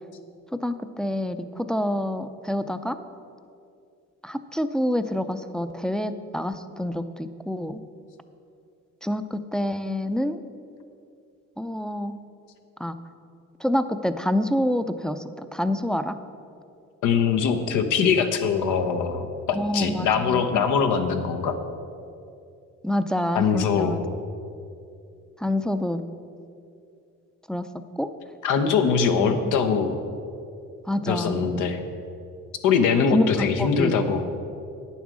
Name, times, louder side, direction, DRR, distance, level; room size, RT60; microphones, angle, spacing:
voice 1, 0.5-3.0 4.2-7.8 9.0-10.4 11.6-12.2 12.8-13.0 13.6-16.2 19.5-20.7 22.8-24.0 25.4-26.0 27.5-27.7 28.0-28.1 29.1-29.5 30.8-31.5 33.1-34.0, left 1 dB, ahead, 9 dB, 0.4 m, -27 dB
voice 2, 17.0-21.6 23.3-24.0 28.4-30.0 31.1-31.8 32.6-34.4, left 6 dB, 90° left, 7 dB, 0.9 m, -22 dB
9.5 x 7.2 x 6.2 m, 2.5 s
cardioid pair, 90°, 30 cm